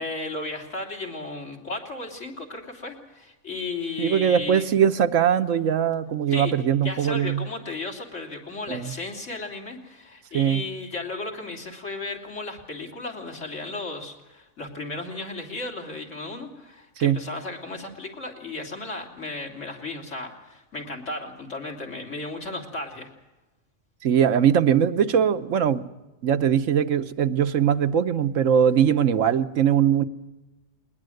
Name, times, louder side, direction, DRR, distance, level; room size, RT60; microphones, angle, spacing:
voice 1, 0.0-4.7 6.3-6.5 6.8-23.1, left 2 dB, 75° left, 2 dB, 3.5 m, -35 dB
voice 2, 4.0-7.5 8.7-8.9 10.3-10.6 17.0-17.2 24.0-25.8 26.2-30.0, right 8 dB, 90° right, 11 dB, 1.3 m, -21 dB
21.0 x 20.0 x 7.9 m, 1.1 s
omnidirectional pair, 1.3 m